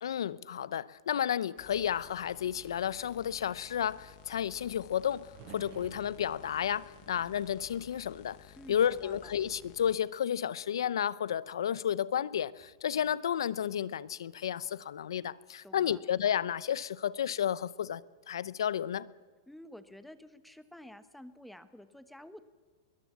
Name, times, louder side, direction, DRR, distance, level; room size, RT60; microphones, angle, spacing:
voice 1, 0.0-8.4 8.7-18.0 18.3-19.1, left 9 dB, 85° left, 0.7 m, -32 dB
sound 1, 1.6-10.0, left 13 dB, 45° left, 1.4 m, -55 dB
sound 2, 5.3-9.3 9.7-10.5 12.3-12.8, right 6 dB, 45° right, 6.0 m, -55 dB
voice 2, 8.6-9.3 15.6-16.0 19.5-22.4, left 1 dB, ahead, 1.0 m, -50 dB
22.0 x 18.0 x 7.4 m
hypercardioid pair, 135°, 2 cm